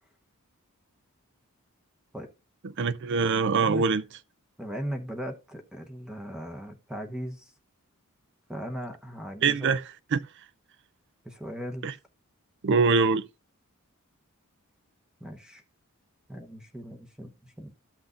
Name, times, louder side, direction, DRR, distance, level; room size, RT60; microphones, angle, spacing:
voice 1, 2.8-4.0 9.4-9.8 10.1-10.2 11.8-11.9 12.6-13.2, right 4 dB, 55° right, 0.5 m, -23 dB
voice 2, 4.6-7.5 8.5-9.7 11.2-11.9 15.2-15.6 16.3-17.8, equal, 5° right, 0.8 m, -38 dB
13.0 x 5.9 x 2.5 m
head